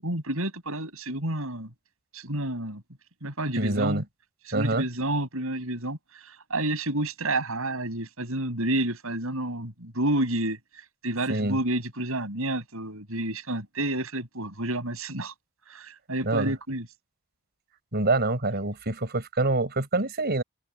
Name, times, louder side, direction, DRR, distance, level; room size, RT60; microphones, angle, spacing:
voice 1, 0.0-1.7 2.1-2.8 3.2-4.0 4.5-10.6 11.0-15.3 15.7-16.9, right 1 dB, 75° right, 7.9 m, -30 dB
voice 2, 3.6-4.0 4.5-4.9 11.3-11.6 16.2-16.5 17.9-20.4, right 2 dB, 50° right, 4.5 m, -26 dB
head